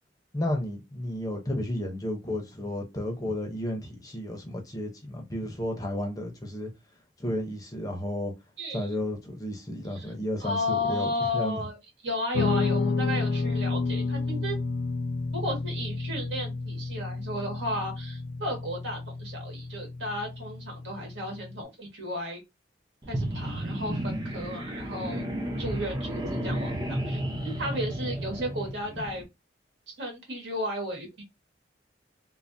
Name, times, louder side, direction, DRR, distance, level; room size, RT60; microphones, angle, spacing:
voice 1, 0.3-6.7 7.2-8.3 8.7-11.6, left 1 dB, 20° left, 0.6 m, -32 dB
voice 2, 10.4-11.8 12.0-14.6 15.3-22.4 23.1-25.2 25.6-29.2 29.9-31.2, left 1 dB, 70° right, 1.6 m, -34 dB
Guitar, 12.3-21.6, left 3 dB, 80° left, 0.4 m, -31 dB
sound 1, 23.0-29.2, right 1 dB, 20° right, 0.6 m, -32 dB
3.2 x 2.1 x 2.5 m
head